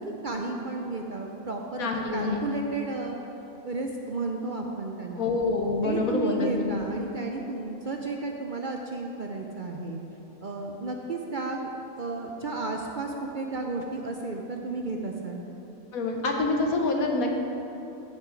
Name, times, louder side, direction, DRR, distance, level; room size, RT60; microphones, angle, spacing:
voice 1, 0.0-3.2 3.6-5.3 5.8-10.0 10.4-11.7 12.0-15.4, right 3 dB, 50° right, 1 dB, 0.6 m, -33 dB
voice 2, 1.8-2.4 5.2-6.8 15.9-17.3, left 3 dB, 85° left, 2 dB, 1.5 m, -26 dB
14.0 x 5.7 x 5.2 m, 2.9 s
omnidirectional pair, 1.4 m